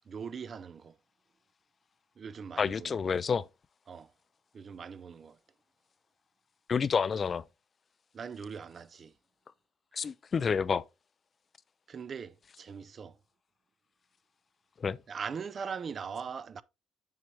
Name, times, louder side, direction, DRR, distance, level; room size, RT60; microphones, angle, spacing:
voice 1, 0.1-1.0 2.2-3.1 3.9-4.1 4.5-5.4 8.1-9.1 11.9-13.2 15.1-16.6, right 6 dB, 40° right, 0.4 m, -41 dB
voice 2, 2.6-3.5 6.7-7.4 9.9-10.8 14.8-15.0, left 6 dB, 40° left, 0.4 m, -29 dB
7.1 x 6.1 x 3.0 m
cardioid pair, 100°, 0 cm